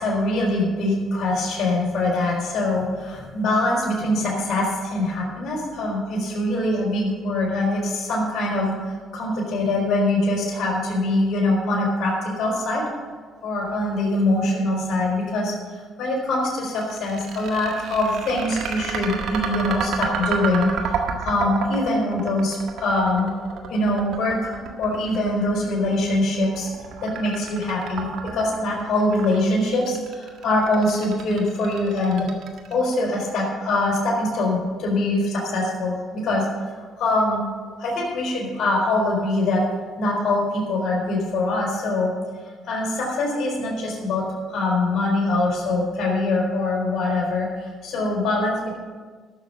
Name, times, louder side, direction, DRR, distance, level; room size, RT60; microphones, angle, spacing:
voice 1, 0.0-8.7 9.1-12.8 13.4-23.3 23.7-26.7 27.0-28.1 28.3-32.3 32.7-36.5 37.0-37.5 37.8-39.6 40.0-42.1 42.6-48.8, left 2 dB, 55° left, -3 dB, 4.2 m, -23 dB
sound 1, 16.8-32.9, right 6 dB, 70° right, 1.7 m, -31 dB
13.0 x 6.8 x 7.2 m, 1.5 s
supercardioid pair, 60°, 0 cm